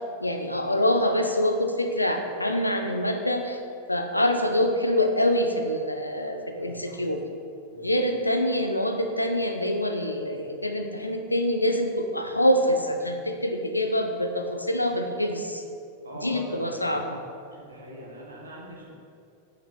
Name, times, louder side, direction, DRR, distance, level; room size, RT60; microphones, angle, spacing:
voice 1, 0.2-3.6 3.9-7.2 7.8-15.6 16.2-17.2, left 1 dB, 85° left, 5 dB, 0.6 m, -25 dB
voice 2, 6.6-7.0 7.7-7.9 16.0-17.0 17.5-18.9, right 1 dB, 75° right, -3 dB, 1.6 m, -42 dB
7.9 x 6.0 x 4.3 m, 2.4 s
figure-of-eight pair, 90°, 0 cm